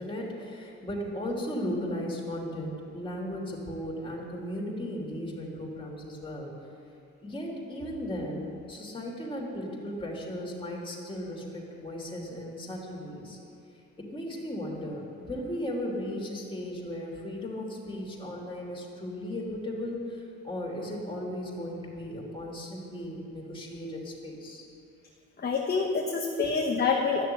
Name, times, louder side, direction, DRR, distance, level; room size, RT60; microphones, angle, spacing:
voice 1, 0.0-6.5 7.2-13.4 14.0-24.7 26.4-26.5, equal, 15° left, -2 dB, 3.1 m, -36 dB
voice 2, 25.4-27.3, left 5 dB, 35° left, 0 dB, 1.2 m, -27 dB
13.0 x 6.8 x 9.8 m, 2.5 s
cardioid pair, 105°, 30 cm